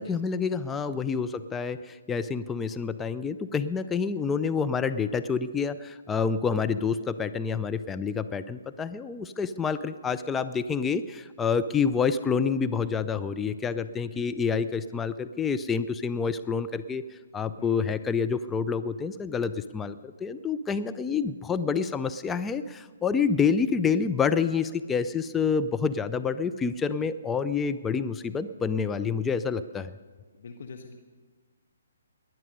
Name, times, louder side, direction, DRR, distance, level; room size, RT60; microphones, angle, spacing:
voice 1, 0.0-29.9, left 6 dB, 10° left, 11 dB, 0.4 m, -28 dB
voice 2, 14.1-14.5 17.6-18.0 30.3-30.9, left 5 dB, 55° left, 4 dB, 1.2 m, -45 dB
19.5 x 11.0 x 5.3 m, 1.4 s
figure-of-eight pair, 135°, 0 cm